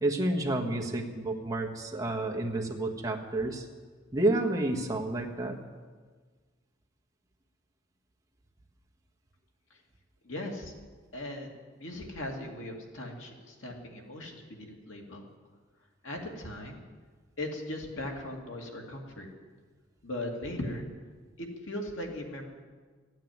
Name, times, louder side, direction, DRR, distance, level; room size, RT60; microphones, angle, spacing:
voice 1, 0.0-3.6 4.1-5.6, right 2 dB, 20° right, 0 dB, 1.4 m, -30 dB
voice 2, 10.2-10.7 11.1-11.5 11.8-15.2 16.0-16.9 17.4-19.3 20.0-20.9 21.4-22.4, left 1 dB, 85° left, 0 dB, 2.5 m, -38 dB
14.0 x 9.3 x 9.3 m, 1.5 s
head